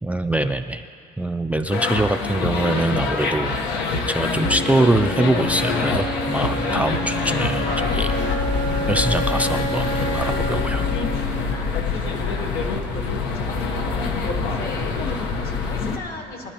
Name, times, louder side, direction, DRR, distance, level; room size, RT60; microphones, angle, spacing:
voice 1, 0.0-0.8 1.2-3.6 3.9-8.1 8.9-10.8, right 1 dB, 10° right, 8 dB, 0.3 m, -23 dB
sound 1, 1.7-16.0, left 4 dB, 90° left, 1.0 m, -25 dB
Wind instrument woodwind instrument, 4.3-12.3, left 1 dB, 25° left, 0.7 m, -30 dB
sound 2, 5.3-10.4, right 10 dB, 70° right, 0.6 m, -37 dB
voice 2, 11.5-12.7 13.1-16.5, left 3 dB, 65° left, 1 dB, 1.9 m, -38 dB
20.0 x 11.5 x 2.9 m, 2.2 s
cardioid pair, 110°, 17 cm